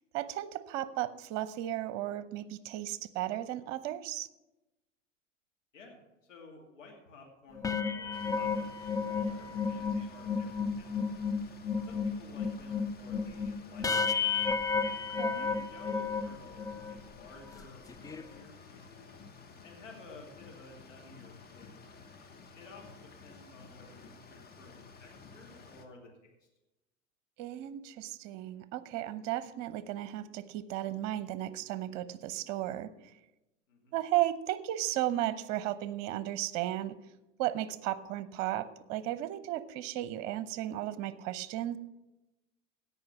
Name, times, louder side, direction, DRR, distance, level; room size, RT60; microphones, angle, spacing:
voice 1, 0.1-4.3 15.2-15.5 27.4-32.9 33.9-37.0 37.4-41.8, right 13 dB, 45° right, 16 dB, 0.8 m, -35 dB
voice 2, 6.2-11.1 11.8-14.6 15.3-19.2 19.6-22.0 22.5-26.5 33.7-34.0, left 3 dB, 80° left, -1 dB, 2.6 m, -54 dB
sound 1, 7.5-17.0 17.5-17.6 17.9-18.2, left 5 dB, 10° left, 0.5 m, -32 dB
sound 2, 8.1-25.9, left 4 dB, 25° left, 1.4 m, -53 dB
16.5 x 5.7 x 5.9 m, 0.98 s
figure-of-eight pair, 80°, 37 cm